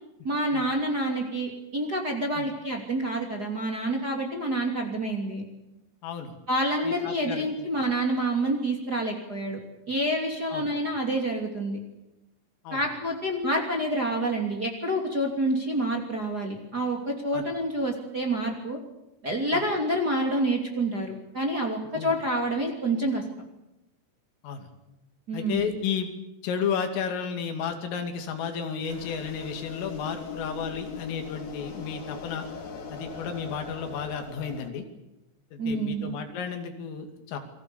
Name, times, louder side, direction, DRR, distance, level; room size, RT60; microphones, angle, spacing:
voice 1, 0.2-5.4 6.5-9.6 9.9-11.8 12.7-18.8 19.2-23.2 25.3-25.7 35.6-36.2, right 1 dB, 25° right, 1 dB, 2.6 m, -28 dB
voice 2, 6.0-6.3 6.8-7.7 10.5-10.7 12.7-12.8 17.3-17.5 19.5-19.6 22.0-22.1 24.4-24.7 25.3-26.1 26.4-32.5 32.9-34.9 35.5-37.4, left 7 dB, 85° left, 6 dB, 5.2 m, -32 dB
sound 1, 28.9-34.7, left 5 dB, 45° left, 3.2 m, -40 dB
28.5 x 23.0 x 7.1 m, 0.93 s
omnidirectional pair, 5.7 m